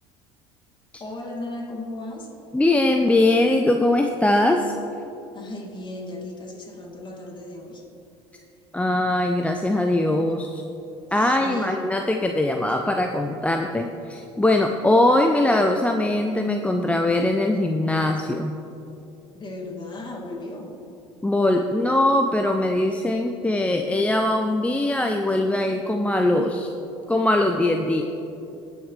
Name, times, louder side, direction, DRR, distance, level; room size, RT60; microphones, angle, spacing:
voice 1, 1.0-2.3 5.3-7.8 11.1-11.8 19.3-20.7, left 2 dB, 30° left, -1 dB, 2.5 m, -36 dB
voice 2, 2.5-4.7 8.7-10.6 11.1-18.5 21.2-26.7 27.1-28.0, left 1 dB, 10° left, 4 dB, 0.6 m, -21 dB
18.5 x 6.4 x 3.4 m, 2.8 s
hypercardioid pair, 70°, 15 cm